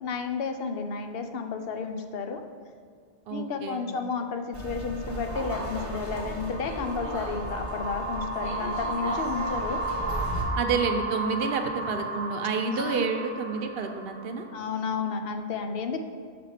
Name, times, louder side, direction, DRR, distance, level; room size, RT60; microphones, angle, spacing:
voice 1, 0.0-2.4 3.3-9.9 12.7-13.0 14.5-16.0, left 5 dB, 70° left, 6 dB, 0.8 m, -32 dB
voice 2, 3.3-3.9 10.6-14.5, right 5 dB, 70° right, 6 dB, 0.8 m, -29 dB
sound 1, 4.5-10.4, right 1 dB, 15° right, 1.0 m, -35 dB
sound 2, 5.1-14.5, right 2 dB, 20° left, 1.4 m, -34 dB
5.9 x 4.2 x 5.7 m, 2.1 s
omnidirectional pair, 1.0 m